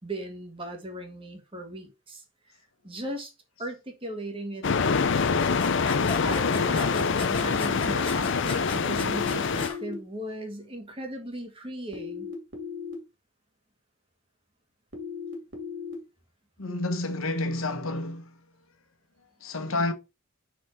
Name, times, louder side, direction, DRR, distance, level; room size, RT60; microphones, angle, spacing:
voice 1, 0.0-2.2 2.8-3.3 3.6-4.6 6.2-12.3, right 1 dB, 25° right, 1.7 m, -37 dB
sound 1, 4.6-9.7, left 5 dB, 60° left, 0.6 m, -25 dB
sound 2, 4.9-9.8, left 5 dB, 25° left, 1.9 m, -36 dB
sound 3, 8.9-9.9 11.9-12.9 14.9-15.9, left 5 dB, 65° right, 2.4 m, -37 dB
voice 2, 16.6-18.4 19.4-19.9, left 2 dB, 85° left, 1.3 m, -30 dB
5.7 x 4.4 x 4.5 m
head